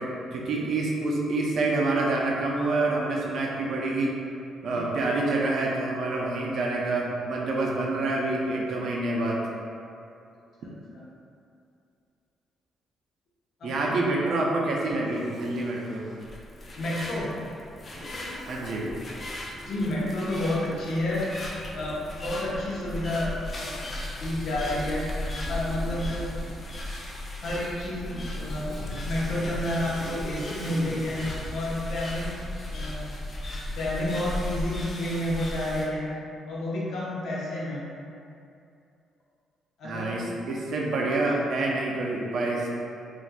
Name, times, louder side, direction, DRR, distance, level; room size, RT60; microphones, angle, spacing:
voice 1, 0.0-4.1 4.6-9.4 13.6-16.0 18.5-18.9 39.8-42.7, right 2 dB, 65° right, -2 dB, 0.5 m, -27 dB
voice 2, 10.6-11.1 13.6-13.9 16.8-17.3 19.5-21.3 21.7-23.8 24.2-25.1 25.5-26.3 27.4-32.4 32.7-33.1 33.8-36.1 36.5-37.8 39.8-40.3, left 1 dB, 70° left, -6 dB, 0.8 m, -30 dB
Zipper (clothing), 14.9-16.3 17.9-19.0 20.4-23.6 24.4-26.7 27.6-31.6, equal, 35° right, 1.4 m, -44 dB
sound 1, 16.2-35.9, left 1 dB, 40° left, 0.6 m, -36 dB
3.9 x 2.5 x 2.2 m, 2.5 s
cardioid pair, 90°, 0 cm